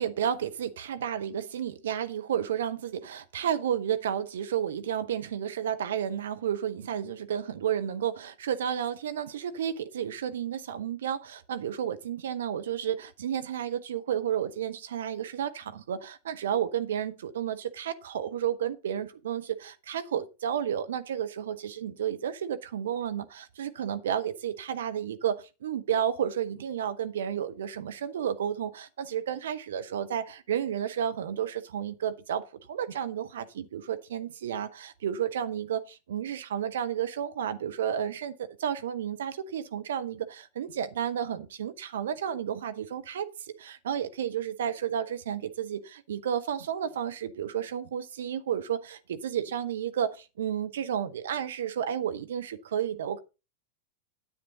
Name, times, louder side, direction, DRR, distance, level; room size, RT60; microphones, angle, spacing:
voice 1, 0.0-53.2, right 9 dB, 60° right, 0.7 m, -32 dB
9.9 x 9.0 x 3.9 m
figure-of-eight pair, 90°, 0 cm